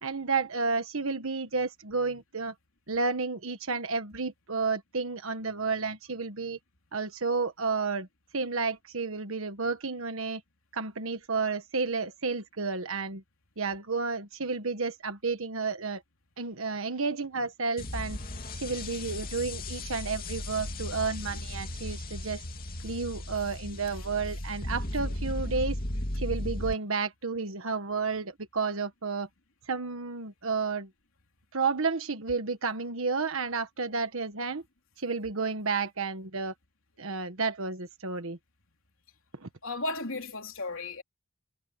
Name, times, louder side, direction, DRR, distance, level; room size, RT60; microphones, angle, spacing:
voice 1, 0.0-2.5 2.9-6.6 6.9-8.1 8.3-10.4 10.7-13.2 13.6-16.0 16.4-18.2 18.5-22.4 22.8-25.8 26.1-29.3 29.7-30.9 31.5-34.6 35.0-36.5 37.0-38.4 39.3-39.5, right 4 dB, 75° right, 1.4 m, -31 dB
sound 1, 17.8-26.7, left 1 dB, 45° left, 2.6 m, -36 dB
voice 2, 39.6-41.0, left 2 dB, 70° left, 3.6 m, -34 dB
head